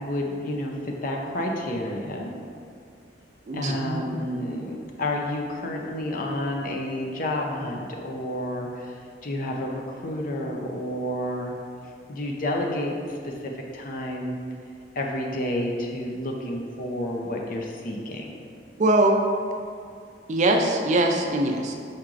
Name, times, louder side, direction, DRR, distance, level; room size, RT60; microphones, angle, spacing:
voice 1, 0.0-2.3 3.5-11.6 12.1-14.4 15.0-18.3, left 1 dB, 50° left, 0 dB, 0.5 m, -30 dB
voice 2, 3.5-4.2 18.8-19.2 20.3-21.7, right 1 dB, 40° right, 2 dB, 0.4 m, -22 dB
4.7 x 4.4 x 2.5 m, 2.3 s
head